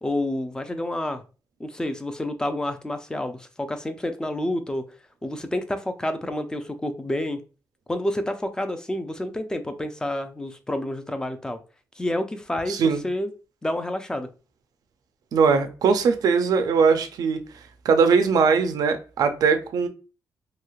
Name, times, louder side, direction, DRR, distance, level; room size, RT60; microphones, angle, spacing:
voice 1, 0.0-1.2 1.6-4.8 5.2-7.4 7.9-11.6 12.0-13.3 13.6-14.3, left 1 dB, 10° left, 0.4 m, -29 dB
voice 2, 12.7-13.0 15.3-17.4 17.8-19.9, right 5 dB, 75° right, 0.4 m, -20 dB
3.0 x 2.8 x 2.3 m
cardioid pair, 120°, 7 cm